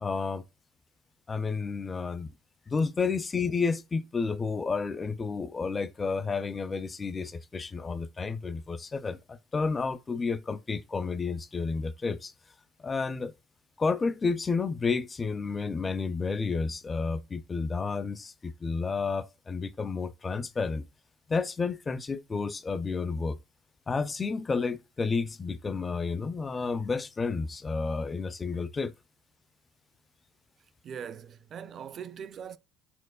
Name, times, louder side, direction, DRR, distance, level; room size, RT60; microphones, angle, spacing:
voice 1, 0.0-0.4 1.3-2.3 2.7-12.3 12.8-13.3 13.8-20.9 21.3-23.4 23.9-28.9, left 4 dB, 25° left, 0.4 m, -31 dB
voice 2, 30.8-32.6, right 8 dB, 45° right, 0.4 m, -41 dB
4.5 x 4.4 x 2.2 m
supercardioid pair, 90°, 0 cm